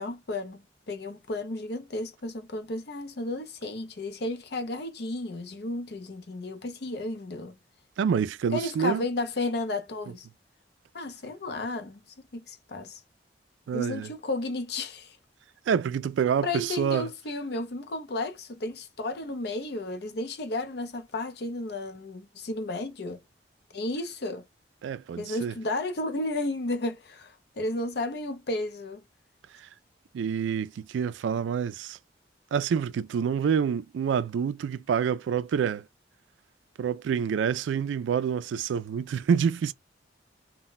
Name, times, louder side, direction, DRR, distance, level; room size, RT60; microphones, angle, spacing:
voice 1, 0.0-7.5 8.5-10.3 10.9-13.0 13.7-15.2 16.4-23.2 23.7-24.4 25.2-29.0, left 2 dB, 60° left, 0.6 m, -33 dB
voice 2, 8.0-9.1 13.7-14.1 15.7-17.1 24.8-25.5 29.5-29.7 30.1-32.0 32.5-35.9 36.8-39.7, right 7 dB, 80° right, 0.3 m, -27 dB
2.2 x 2.1 x 3.8 m
head